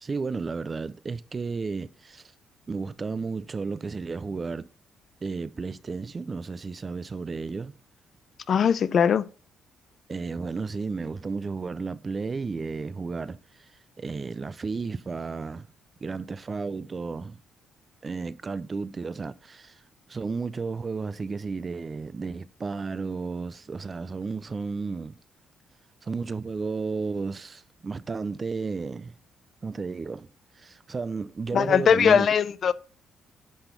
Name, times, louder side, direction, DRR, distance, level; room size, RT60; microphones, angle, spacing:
voice 1, 0.0-2.3 2.7-4.7 5.2-7.7 10.1-13.7 14.0-15.7 16.0-17.4 18.0-19.8 20.1-25.2 26.0-29.1 29.6-30.3 30.5-32.3, right 4 dB, 35° right, 0.5 m, -33 dB
voice 2, 8.5-9.3 31.5-32.7, left 7 dB, 55° left, 0.5 m, -20 dB
10.5 x 3.9 x 6.7 m
cardioid pair, 90°, 0 cm